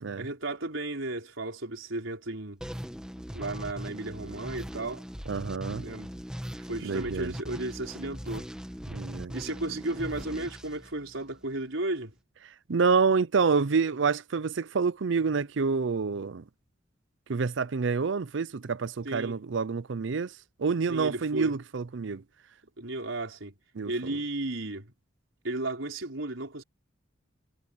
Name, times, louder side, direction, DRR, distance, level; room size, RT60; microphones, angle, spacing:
voice 1, 0.1-2.6 3.3-5.0 5.8-6.1 6.6-8.5 9.3-12.1 19.0-19.4 20.9-21.5 22.8-23.5 23.8-24.9 25.4-26.6, right 2 dB, 85° right, 4.5 m, -34 dB
sound 1, 2.6-11.5, equal, 5° right, 1.8 m, -40 dB
voice 2, 5.3-5.9 6.8-7.3 8.9-9.3 12.7-16.4 17.3-20.3 20.6-22.2 23.7-23.9, right 5 dB, 65° right, 0.6 m, -27 dB
head